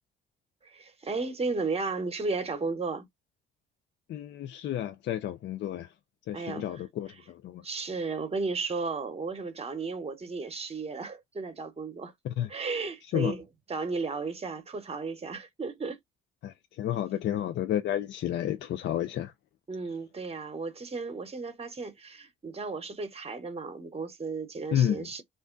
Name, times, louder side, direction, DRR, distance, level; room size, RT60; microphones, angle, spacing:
voice 1, 0.6-3.1 6.3-7.2 7.6-12.1 12.5-16.0 19.7-25.2, right 4 dB, 30° right, 1.0 m, -34 dB
voice 2, 4.1-5.9 6.3-7.6 12.4-12.5 13.1-13.3 16.4-19.3 24.7-25.1, left 11 dB, 65° left, 0.4 m, -31 dB
2.5 x 2.1 x 3.8 m
cardioid pair, 90°, 20 cm